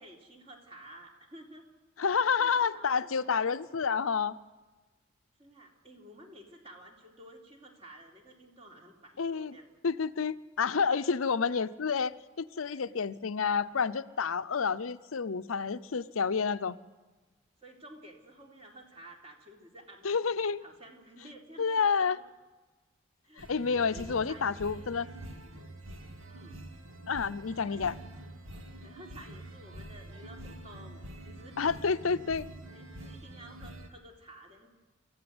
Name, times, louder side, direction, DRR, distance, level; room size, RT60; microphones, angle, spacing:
voice 1, 0.0-1.7 2.4-3.6 5.4-9.7 10.7-11.0 12.7-12.9 17.6-20.2 20.6-22.2 23.2-25.0 26.3-26.6 28.8-32.1 32.7-34.7, right 1 dB, 30° right, 1 dB, 3.6 m, -52 dB
voice 2, 2.0-4.4 9.2-9.6 9.8-16.8 20.0-20.6 21.6-22.2 23.4-25.1 27.1-28.0 31.6-32.5, left 5 dB, 90° left, 12 dB, 0.7 m, -29 dB
sound 1, 23.4-33.9, right 1 dB, 90° right, 2.4 m, -46 dB
26.5 x 15.0 x 7.9 m, 1.3 s
head